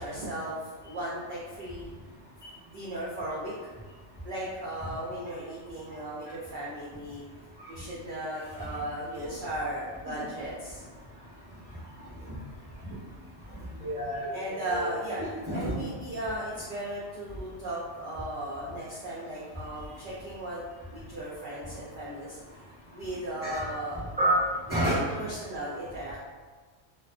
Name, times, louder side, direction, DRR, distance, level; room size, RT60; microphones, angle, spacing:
voice 1, 0.0-1.9 2.7-3.7 4.2-7.2 7.7-10.8 14.3-20.6 20.9-22.6 22.9-24.0 24.7-26.2, right 1 dB, 60° right, -7 dB, 0.6 m, -36 dB
voice 2, 13.8-14.9 15.2-15.7 23.4-23.7 24.2-25.0, right 1 dB, 10° right, -9 dB, 0.8 m, -29 dB
2.4 x 2.3 x 2.3 m, 1.4 s
omnidirectional pair, 1.2 m